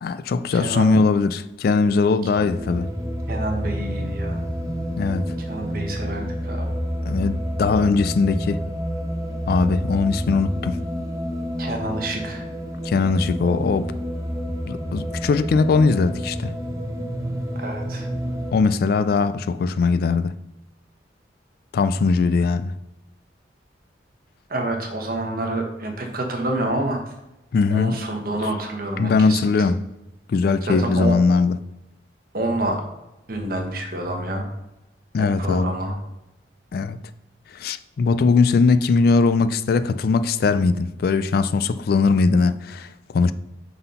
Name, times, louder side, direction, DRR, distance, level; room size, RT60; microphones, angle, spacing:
voice 1, 0.0-2.9 5.0-5.2 7.1-8.6 9.5-10.8 12.8-13.9 14.7-16.6 18.5-20.4 21.7-22.7 27.5-28.0 29.0-29.8 30.3-31.6 35.1-35.7 36.7-37.0 37.5-43.3, left 4 dB, 55° left, 0.3 m, -20 dB
voice 2, 0.5-1.0 3.3-4.4 5.5-6.7 11.6-12.4 17.5-18.1 24.5-27.1 27.7-29.7 30.6-31.1 32.3-32.8 33.3-34.5 35.2-36.0, right 1 dB, 50° right, 1.1 m, -28 dB
sound 1, 2.3-18.5, equal, 20° right, 0.8 m, -29 dB
5.7 x 4.0 x 5.4 m
head